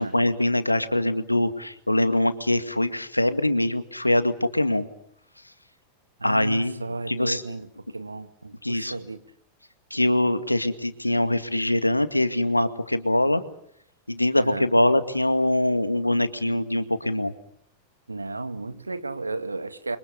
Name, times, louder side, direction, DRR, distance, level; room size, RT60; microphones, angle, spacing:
voice 1, 0.0-4.8 6.2-7.4 8.6-9.0 9.9-13.4 14.1-17.3, left 1 dB, 85° left, 11 dB, 2.0 m, -23 dB
voice 2, 6.2-7.7 7.9-9.2 14.4-14.7 18.1-20.0, right 3 dB, 80° right, 11 dB, 1.8 m, -33 dB
30.0 x 24.5 x 7.0 m, 0.70 s
figure-of-eight pair, 90°, 0 cm